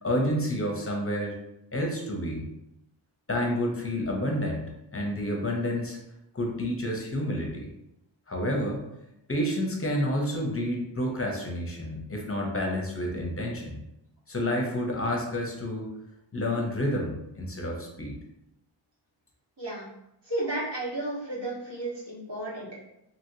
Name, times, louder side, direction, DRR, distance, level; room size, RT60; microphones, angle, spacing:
voice 1, 0.0-1.3 1.7-2.5 3.3-6.0 6.3-7.7 8.3-8.8 9.3-13.8 14.3-15.9 16.3-18.2, left 1 dB, 30° left, 0 dB, 0.7 m, -29 dB
voice 2, 20.2-22.7, right 1 dB, 60° right, -8 dB, 1.5 m, -33 dB
2.8 x 2.8 x 2.7 m, 0.83 s
wide cardioid pair, 80°, 46 cm